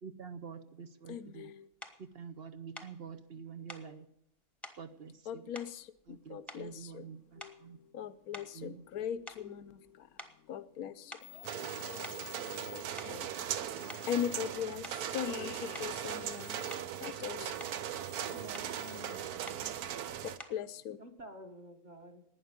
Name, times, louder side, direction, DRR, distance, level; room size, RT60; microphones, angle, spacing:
voice 1, 0.0-1.5 2.0-4.1 4.8-5.5 6.1-7.8 8.5-8.8, right 6 dB, 50° right, 0.9 m, -47 dB
voice 2, 1.1-1.7 3.9-4.0 5.3-7.1 7.4-10.1 10.5-11.5 11.8-17.5 20.2-21.0, left 9 dB, 85° left, 1.2 m, -41 dB
sound 1, 1.8-2.0 2.7-3.0 3.7-3.9 4.6-4.8 5.5-6.2 6.5-6.9 7.4-7.7 8.3-9.9 10.2-10.4 11.1-11.4 12.0-12.3 12.8-13.3 13.9-14.1 14.8-15.1 15.7-16.0 16.7-17.0 17.4-17.8 18.5-18.8 19.5-19.7 20.4-20.7, left 1 dB, ahead, 1.0 m, -49 dB
sound 2, 11.2-19.2, left 10 dB, 55° left, 0.9 m, -54 dB
sound 3, 11.4-20.4, right 10 dB, 90° right, 1.3 m, -39 dB
voice 3, 18.2-19.7 21.0-22.2, equal, 30° right, 1.8 m, -51 dB
11.5 x 9.5 x 9.4 m
omnidirectional pair, 1.5 m